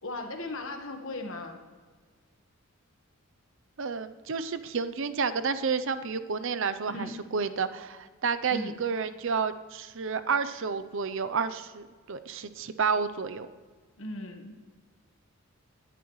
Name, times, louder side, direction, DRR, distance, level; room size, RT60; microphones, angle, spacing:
voice 1, 0.0-1.6 6.9-7.1 8.5-8.8 14.0-14.5, left 2 dB, 60° left, 5 dB, 1.4 m, -37 dB
voice 2, 3.8-13.5, right 5 dB, 60° right, 12 dB, 0.6 m, -30 dB
17.0 x 11.0 x 3.2 m, 1.5 s
head